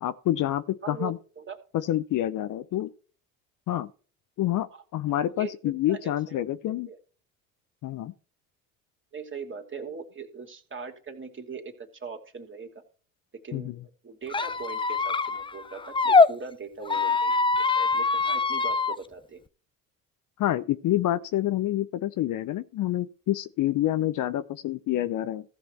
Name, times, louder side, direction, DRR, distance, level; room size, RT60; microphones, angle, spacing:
voice 1, 0.0-1.2 1.9-2.9 3.7-3.9 4.4-6.9 7.8-8.1 13.5-13.7 20.4-25.4, left 13 dB, 50° left, 0.7 m, -27 dB
voice 2, 0.8-1.6 4.7-7.0 9.1-12.8 13.4-13.7 14.0-19.4, right 5 dB, 30° right, 2.6 m, -41 dB
Squeak, 14.3-16.3 16.8-19.0, left 4 dB, 10° left, 0.6 m, -23 dB
15.0 x 6.1 x 4.5 m
hypercardioid pair, 65°, 41 cm